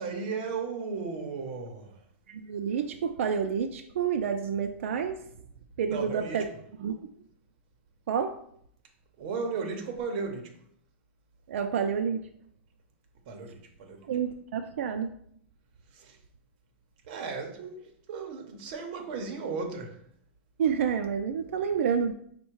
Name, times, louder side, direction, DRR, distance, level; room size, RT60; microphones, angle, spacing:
voice 1, 0.0-2.1 5.9-6.5 9.2-10.6 13.2-14.1 15.9-16.2 17.1-20.0, right 4 dB, 40° right, 0.8 m, -35 dB
voice 2, 2.3-5.2 5.8-6.5 6.8-7.0 8.1-8.4 11.5-12.3 14.1-15.1 20.6-22.1, right 7 dB, 75° right, 0.4 m, -29 dB
5.4 x 2.2 x 4.5 m
supercardioid pair, 170°, 7 cm